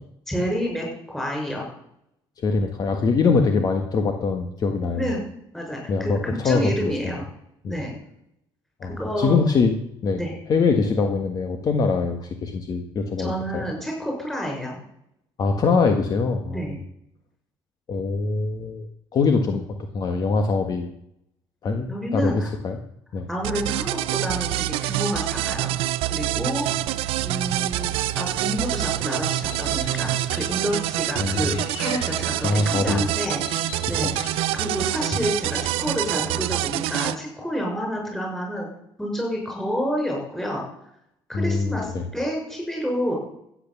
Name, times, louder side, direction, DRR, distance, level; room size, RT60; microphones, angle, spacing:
voice 1, 0.3-1.7 4.9-5.2 5.5-7.2 7.7-7.9 9.0-9.4 10.2-10.3 13.2-14.8 16.5-16.8 21.9-22.5 23.3-25.8 26.1-26.6 26.9-33.4 33.8-34.1 34.5-38.7 39.0-40.6 41.3-43.2, equal, 5° left, 0 dB, 6.2 m, -29 dB
voice 2, 2.4-5.1 5.9-6.9 7.6-7.8 8.8-9.7 10.0-10.2 10.5-13.7 15.4-16.8 17.9-18.9 19.1-20.9 21.6-22.8 23.1-23.3 31.2-31.6 32.4-33.1 34.0-34.1 41.3-42.1, left 4 dB, 40° left, 5 dB, 1.5 m, -23 dB
sound 1, 23.4-37.2, right 16 dB, 85° right, 0.6 m, -26 dB
sound 2, 26.6-36.3, left 7 dB, 80° left, 1.6 m, -42 dB
15.0 x 8.7 x 7.1 m, 0.76 s
cardioid pair, 130°, 9 cm